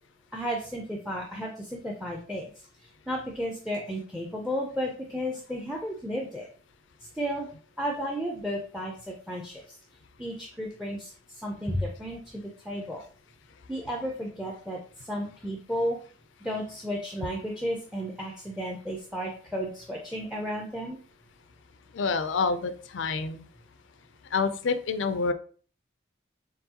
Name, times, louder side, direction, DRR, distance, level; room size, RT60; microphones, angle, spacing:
voice 1, 0.3-2.5 2.8-6.5 7.1-7.5 7.8-9.6 10.2-13.0 13.7-16.0 16.4-21.0, equal, ahead, 0 dB, 0.4 m, -33 dB
voice 2, 21.9-23.5 24.3-25.3, left 4 dB, 75° left, 11 dB, 0.4 m, -27 dB
4.6 x 3.4 x 2.8 m, 0.42 s
head